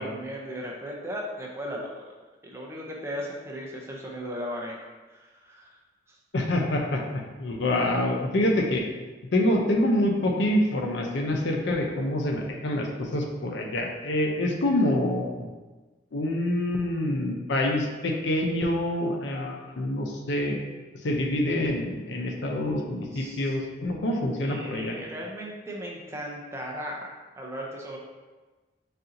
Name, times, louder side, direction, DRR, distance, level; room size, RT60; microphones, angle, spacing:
voice 1, 0.0-2.0 2.4-4.8 5.1-5.8 6.1-6.2 23.1-23.5 24.4-27.0 27.4-28.0, equal, 15° right, -2 dB, 0.5 m, -36 dB
voice 2, 6.3-8.8 9.3-15.5 16.1-20.6 21.0-25.0, left 1 dB, 70° left, 2 dB, 0.6 m, -26 dB
4.2 x 2.7 x 3.7 m, 1.2 s
head